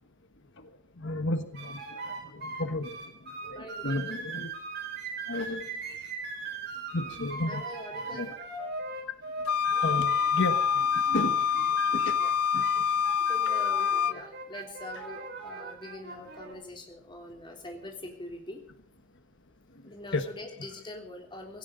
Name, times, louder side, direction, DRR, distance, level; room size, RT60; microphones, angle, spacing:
voice 1, 1.0-3.0 3.4-4.5 5.3-6.0 6.9-8.3 9.7-12.2 12.5-12.7 13.8-14.2 20.1-20.5, left 2 dB, 55° left, 9 dB, 1.3 m, -34 dB
sound 1, 1.5-16.5, right 4 dB, 45° right, 4.2 m, -40 dB
voice 2, 3.5-4.2 7.5-8.3 12.2-12.7 13.3-18.6 19.8-21.6, left 2 dB, 20° left, 2 dB, 3.4 m, -44 dB
Wind instrument woodwind instrument, 9.5-14.2, left 7 dB, 85° left, 0.6 m, -26 dB
17.0 x 17.0 x 4.0 m, 0.64 s
head